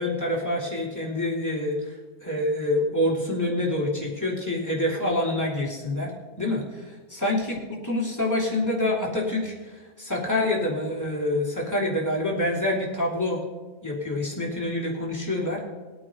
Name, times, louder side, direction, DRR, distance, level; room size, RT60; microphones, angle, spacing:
voice 1, 0.0-1.9 2.2-6.1 6.4-9.5 10.0-13.4 13.8-15.6, left 1 dB, 10° left, -4 dB, 3.0 m, -26 dB
20.5 x 8.7 x 3.9 m, 1.3 s
omnidirectional pair, 1.9 m